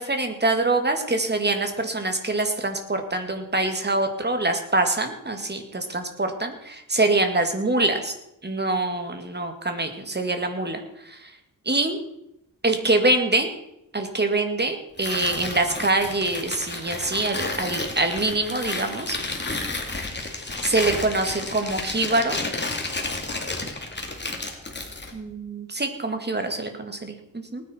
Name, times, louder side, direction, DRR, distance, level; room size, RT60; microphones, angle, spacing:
voice 1, 0.0-8.2 8.4-11.2 11.7-12.0 12.6-13.5 13.9-19.2 20.6-22.4 25.1-27.6, right 2 dB, 30° right, 5 dB, 2.2 m, -25 dB
Tearing, 15.0-25.2, left 2 dB, 30° left, 2.4 m, -31 dB
19.5 x 9.6 x 4.5 m, 0.81 s
wide cardioid pair, 85°, 34 cm